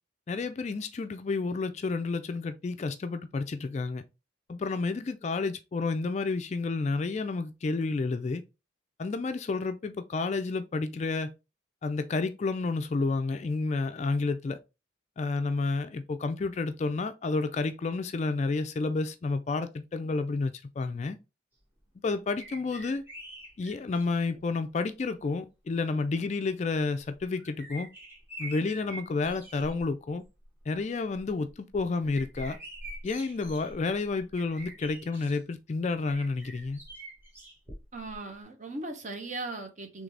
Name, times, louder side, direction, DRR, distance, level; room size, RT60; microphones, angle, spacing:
voice 1, 0.3-4.0 4.5-8.4 9.0-11.3 11.8-14.6 15.2-21.2 22.0-23.0 23.6-27.9 28.4-30.2 30.7-32.6 33.0-36.8, left 3 dB, 35° left, 0.3 m, -30 dB
sound 1, 22.4-24.4 25.3-25.4 26.9-29.9 30.2-30.6 31.0-35.4 36.0-38.2 38.4-38.5, right 1 dB, 10° right, 1.3 m, -45 dB
voice 2, 37.9-40.0, right 2 dB, 40° right, 0.8 m, -38 dB
3.8 x 3.2 x 3.2 m
head